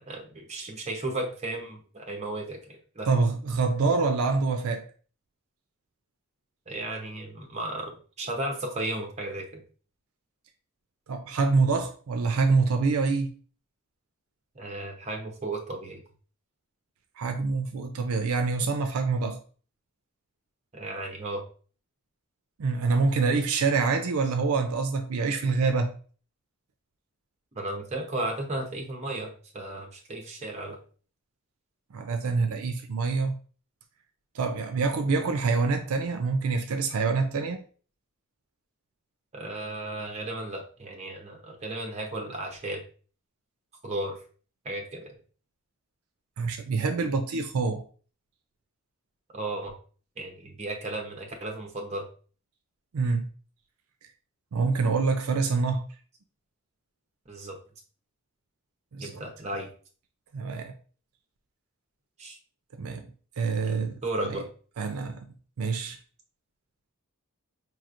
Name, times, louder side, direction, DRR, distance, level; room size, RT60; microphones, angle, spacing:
voice 1, 0.1-2.6 2.9-3.1 6.7-9.6 14.5-16.0 20.7-21.4 27.5-30.8 39.3-42.8 43.8-44.2 44.6-45.1 49.3-49.7 50.2-52.1 57.3-57.5 59.0-59.7 62.2-62.4 63.6-63.7 64.0-64.4, right 2 dB, 30° right, 0.8 m, -34 dB
voice 2, 3.1-4.8 11.1-13.3 17.2-19.4 22.6-25.9 31.9-33.3 34.3-37.6 46.4-47.8 52.9-53.3 54.5-55.9 58.9-59.2 60.3-60.7 62.7-63.1 63.4-64.4 64.8-65.3 65.6-66.0, right 4 dB, 75° right, 0.4 m, -26 dB
4.8 x 3.1 x 2.5 m
head